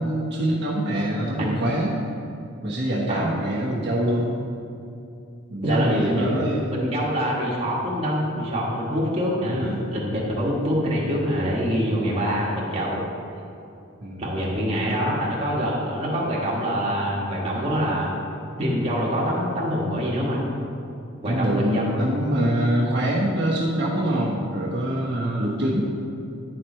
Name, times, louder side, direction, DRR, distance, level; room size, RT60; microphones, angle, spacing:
voice 1, 0.0-2.0 2.6-4.4 5.5-6.7 9.5-9.9 14.0-14.3 14.6-15.1 21.3-25.8, right 1 dB, 55° right, -6 dB, 1.1 m, -24 dB
voice 2, 5.6-6.3 6.7-13.0 14.2-18.1 18.6-20.4 21.2-21.8, equal, 30° right, -5 dB, 1.5 m, -25 dB
9.8 x 4.6 x 4.4 m, 2.6 s
head